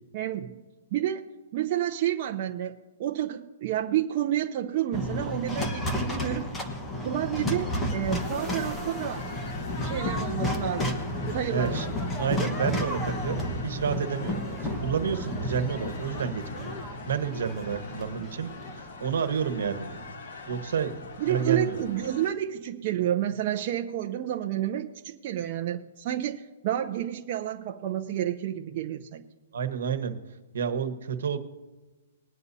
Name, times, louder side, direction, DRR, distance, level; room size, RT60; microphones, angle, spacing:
voice 1, 0.1-0.6 0.9-1.2 1.5-6.5 7.0-9.3 9.8-11.0 11.3-11.8 21.2-29.2, right 11 dB, 40° right, 4 dB, 0.7 m, -30 dB
sound 1, 4.9-21.1, left 1 dB, 10° left, 1.2 m, -32 dB
sound 2, 7.7-22.3, left 3 dB, 60° left, 1.8 m, -44 dB
voice 2, 11.5-11.9 12.2-16.7 17.1-18.5 18.8-20.0 20.5-21.8 29.5-30.1 30.5-31.4, right 7 dB, 75° right, 10 dB, 1.3 m, -30 dB
21.0 x 9.5 x 2.8 m, 1.2 s
hypercardioid pair, 155°, 0 cm